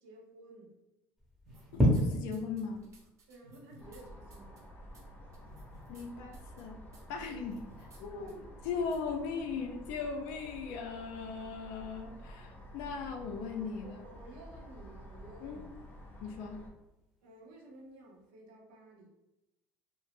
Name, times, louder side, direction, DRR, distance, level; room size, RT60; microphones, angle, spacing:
voice 1, 0.0-0.7 3.3-4.6 7.2-7.4 8.1-8.4 13.8-15.7 17.2-19.1, right 1 dB, 85° right, -1 dB, 0.7 m, -53 dB
sound 1, 1.2-18.3, equal, 5° right, 0.8 m, -40 dB
sound 2, 1.5-2.0 2.3-4.0 4.3-4.6 4.9-5.0 5.3-6.0 6.3-6.6 6.9-7.0 7.4-8.0 8.3-8.4 8.9-9.0, right 1 dB, 45° right, 0.8 m, -58 dB
voice 2, 1.7-2.9 5.9-6.8 7.1-7.6 8.0-14.0 15.4-15.7 16.2-16.6, left 5 dB, 80° left, 3 dB, 0.4 m, -38 dB
sound 3, 3.8-16.7, equal, 25° left, 0.6 m, -51 dB
2.4 x 2.0 x 3.3 m, 0.94 s
supercardioid pair, 95°, 7 cm